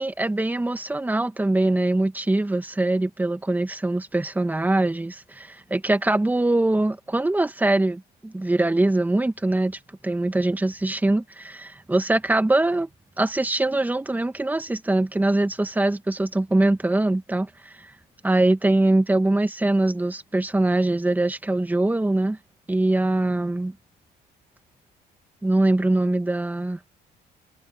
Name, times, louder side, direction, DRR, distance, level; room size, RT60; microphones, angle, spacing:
voice 1, 0.0-12.9 13.2-17.9 18.2-22.4 22.7-23.7 25.4-26.8, right 2 dB, 10° right, 1.8 m, -23 dB
cardioid pair, 110°, 17 cm